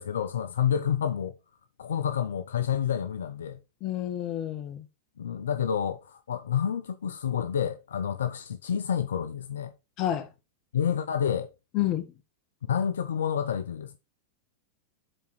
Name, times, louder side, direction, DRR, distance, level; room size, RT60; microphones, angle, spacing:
voice 1, 0.0-1.4 1.8-3.6 5.2-9.7 10.7-11.5 12.7-14.0, left 8 dB, 80° left, 0.6 m, -29 dB
voice 2, 3.8-4.9 10.0-10.3 11.7-12.0, left 12 dB, 45° left, 1.3 m, -29 dB
8.0 x 4.2 x 4.4 m
hypercardioid pair, 105°, 0 cm